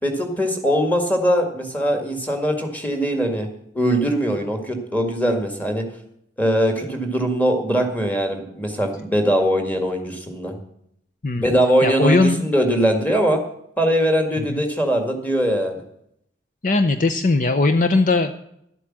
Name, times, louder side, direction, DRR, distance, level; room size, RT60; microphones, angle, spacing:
voice 1, 0.0-3.5 3.7-5.9 6.4-10.6 11.4-13.4 13.8-15.8, equal, 10° left, 4 dB, 1.9 m, -21 dB
voice 2, 11.8-12.5 14.4-14.6 16.6-18.3, left 3 dB, 45° left, 9 dB, 0.6 m, -19 dB
11.5 x 8.2 x 7.5 m, 0.73 s
head